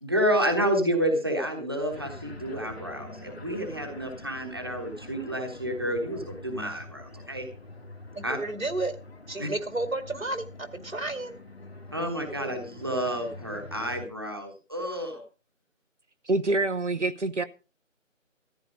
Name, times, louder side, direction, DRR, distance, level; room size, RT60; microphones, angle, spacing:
voice 1, 0.0-7.4 8.2-8.4 9.4-9.5 11.9-15.2, equal, 20° right, 1.2 m, -29 dB
sound 1, 1.9-14.1, left 2 dB, 50° left, 2.0 m, -45 dB
voice 2, 8.1-9.0 9.3-11.4, right 2 dB, 80° right, 2.4 m, -32 dB
voice 3, 16.2-17.4, right 2 dB, 60° right, 0.9 m, -26 dB
14.0 x 10.0 x 5.0 m
figure-of-eight pair, 170°, 40 cm